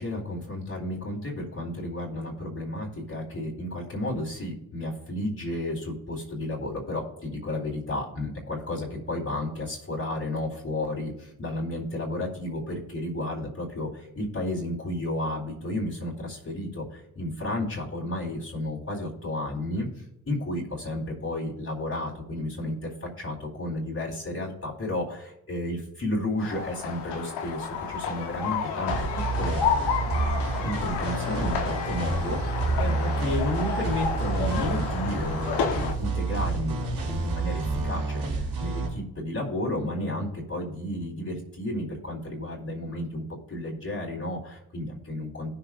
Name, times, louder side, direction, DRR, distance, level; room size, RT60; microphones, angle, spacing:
voice 1, 0.0-19.9 20.3-29.6 30.6-45.5, left 1 dB, 35° left, -3 dB, 4.0 m, -32 dB
sound 1, 26.4-35.9, left 6 dB, 85° left, 1.2 m, -31 dB
sound 2, 28.9-38.9, right 3 dB, 70° right, 3.9 m, -29 dB
19.0 x 6.9 x 2.5 m, 0.83 s
supercardioid pair, 50°, 40 cm